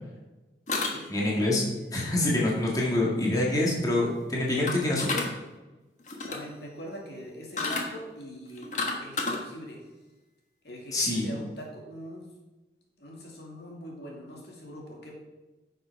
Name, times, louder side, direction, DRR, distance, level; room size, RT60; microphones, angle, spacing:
sound 1, 0.7-1.4 4.7-5.3 6.0-6.5 7.6-7.8 8.5-9.4, left 3 dB, 45° left, 1.4 m, -30 dB
voice 1, 1.1-1.6 1.9-5.2 10.9-11.3, left 1 dB, 20° left, -4 dB, 1.8 m, -26 dB
voice 2, 6.3-8.7 9.0-9.8 10.6-12.3 13.0-15.2, equal, 70° left, -1 dB, 2.5 m, -42 dB
10.0 x 6.7 x 4.7 m, 1.1 s
head